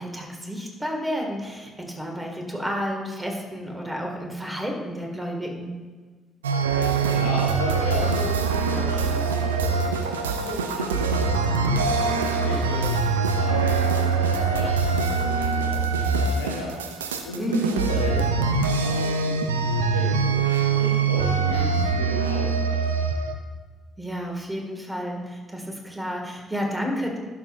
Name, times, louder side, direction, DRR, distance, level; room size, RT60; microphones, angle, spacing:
voice 1, 0.0-5.7 17.4-17.9 21.5-21.8 24.0-27.2, equal, 15° right, 1 dB, 2.1 m, -30 dB
sound 1, 6.4-23.3, right 5 dB, 85° right, 0.4 m, -23 dB
voice 2, 7.0-17.0 17.2-20.4 20.7-23.1, left 2 dB, 90° left, -4 dB, 0.9 m, -34 dB
11.5 x 6.1 x 2.6 m, 1.4 s
hypercardioid pair, 45°, 0 cm